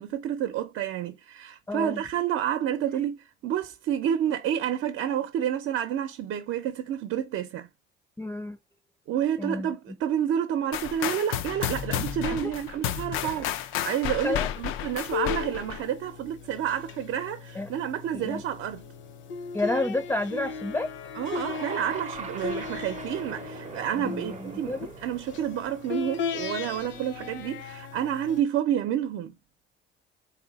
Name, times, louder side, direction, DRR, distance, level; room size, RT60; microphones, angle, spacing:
voice 1, 0.0-7.7 9.1-18.8 21.2-29.3, right 10 dB, 70° right, 0.7 m, -29 dB
voice 2, 1.7-2.0 8.2-8.6 9.4-9.7 12.3-12.5 13.2-13.4 14.2-14.5 17.6-17.7 18.1-18.4 19.5-20.9 24.0-24.9, left 2 dB, 10° left, 0.5 m, -30 dB
sound 1, 10.7-15.8, left 10 dB, 75° left, 0.5 m, -31 dB
sound 2, 14.0-28.4, left 6 dB, 60° left, 0.9 m, -37 dB
sound 3, 21.4-27.7, right 7 dB, 35° right, 0.6 m, -43 dB
4.0 x 2.8 x 3.9 m
cardioid pair, 105°, 21 cm